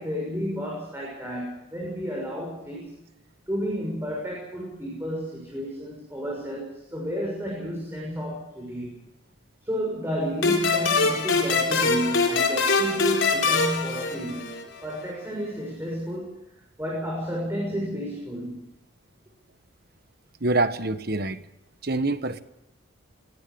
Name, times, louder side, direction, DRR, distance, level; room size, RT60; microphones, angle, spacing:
voice 1, 0.0-3.0 3.5-9.1 9.6-16.4 16.8-18.7, equal, 10° right, -2 dB, 6.8 m, -31 dB
sound 1, 10.4-14.8, left 4 dB, 60° left, 4.3 m, -23 dB
voice 2, 20.4-21.4 21.8-22.4, right 2 dB, 45° right, 11 dB, 1.3 m, -25 dB
24.0 x 18.0 x 7.0 m, 0.89 s
head